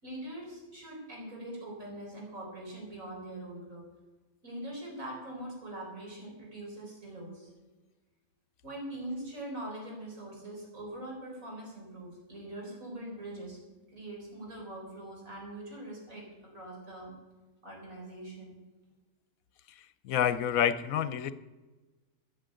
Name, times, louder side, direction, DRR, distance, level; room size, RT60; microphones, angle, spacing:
voice 1, 0.0-3.9 4.4-7.5 8.6-13.6 13.9-17.1 17.6-18.6, right 1 dB, 65° right, -2 dB, 5.1 m, -42 dB
voice 2, 19.8-21.3, left 9 dB, 75° left, 14 dB, 1.0 m, -28 dB
11.5 x 8.6 x 8.9 m, 1.2 s
omnidirectional pair, 1.5 m